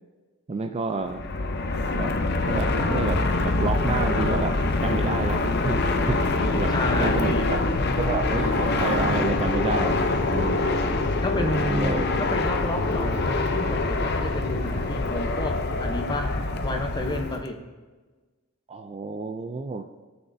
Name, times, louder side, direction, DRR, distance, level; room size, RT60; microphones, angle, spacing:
voice 1, 0.5-1.2 2.0-2.2 2.5-7.4 8.0-10.0 10.3-10.7 11.4-12.1 18.7-19.9, right 4 dB, 30° right, 7 dB, 0.3 m, -30 dB
Fixed-wing aircraft airplane, 1.0-17.4, left 2 dB, 50° left, 0.6 m, -25 dB
voice 2, 6.7-7.5 11.2-16.3 16.6-17.6, left 1 dB, 20° left, 4 dB, 0.8 m, -30 dB
17.5 x 6.0 x 2.7 m, 1.3 s
head